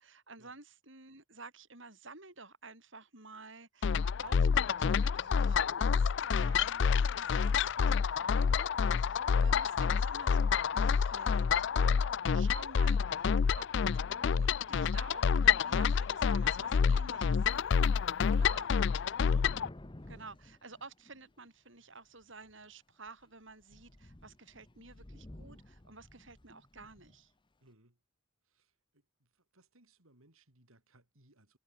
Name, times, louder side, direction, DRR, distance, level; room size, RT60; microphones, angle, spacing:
voice 1, 0.0-13.7 13.9-17.8 18.2-18.7 19.2-19.4 20.1-27.3, right 3 dB, 60° right, 5.6 m, -52 dB
sound 1, 3.8-19.7, left 6 dB, 55° left, 0.4 m, -28 dB
Thunder / Rain, 17.1-17.2 17.3-21.5 22.2-22.6 23.1-23.2 23.5-27.2, left 1 dB, 20° left, 0.9 m, -53 dB
voice 2, 27.6-28.0 28.4-31.6, right 1 dB, 80° right, 5.3 m, -66 dB
head